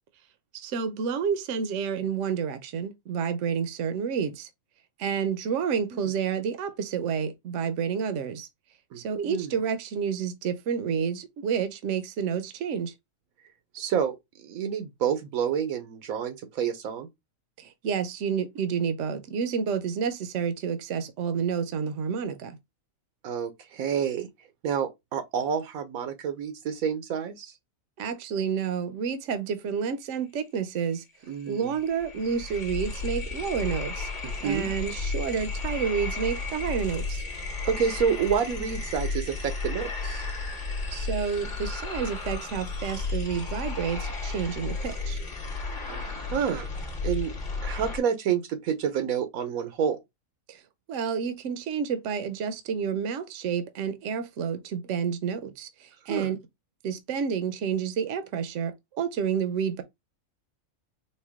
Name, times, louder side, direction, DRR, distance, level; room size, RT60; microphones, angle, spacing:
voice 1, 0.5-4.5 5.0-8.5 9.0-12.9 17.6-22.6 28.0-31.0 31.5-34.1 34.4-37.2 40.9-45.2 50.5-50.6 50.9-56.4 56.8-59.8, right 7 dB, 70° right, 0.9 m, -29 dB
voice 2, 13.7-17.1 23.2-24.3 24.6-27.5 31.3-31.7 34.2-34.7 37.7-40.2 45.9-46.7 47.0-47.3 47.6-50.0 56.1-56.3, right 7 dB, 90° right, 1.2 m, -29 dB
sound 1, 31.0-31.1 31.3-48.0, left 3 dB, 40° left, 1.1 m, -33 dB
4.3 x 2.2 x 3.5 m
omnidirectional pair, 1.4 m